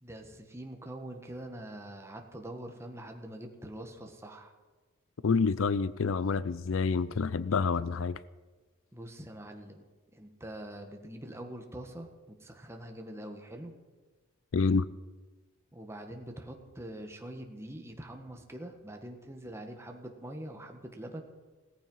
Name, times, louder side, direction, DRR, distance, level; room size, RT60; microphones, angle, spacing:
voice 1, 0.0-4.5 8.9-9.8 10.1-13.7 15.7-21.2, right 1 dB, 10° right, 3 dB, 1.7 m, -44 dB
voice 2, 5.2-8.2 14.5-14.9, left 4 dB, 65° left, 17 dB, 0.5 m, -28 dB
17.5 x 14.5 x 5.6 m, 1.3 s
head